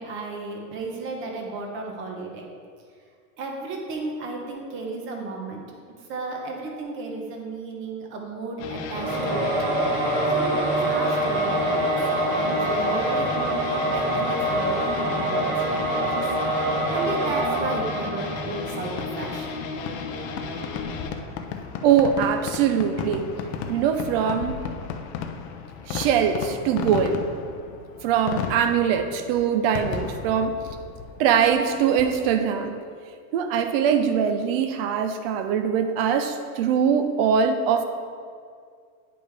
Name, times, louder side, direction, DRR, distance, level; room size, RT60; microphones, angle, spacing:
voice 1, 0.0-2.5 3.4-5.7 6.0-9.5 10.3-12.0 12.3-13.3 13.9-16.3 16.9-19.6, right 3 dB, 30° right, 1 dB, 0.9 m, -34 dB
sound 1, 8.6-21.1, left 4 dB, 70° left, 1.0 m, -33 dB
Singing / Musical instrument, 8.9-19.0, right 1 dB, 85° right, 2.0 m, -25 dB
Fireworks, 19.0-32.5, left 7 dB, 50° left, 0.6 m, -35 dB
voice 2, 21.8-23.3 23.7-24.6 25.9-27.2 28.0-30.7 31.2-32.8 33.3-37.8, right 7 dB, 45° right, 8 dB, 0.5 m, -22 dB
9.7 x 5.2 x 3.3 m, 2.1 s
supercardioid pair, 170°, 43 cm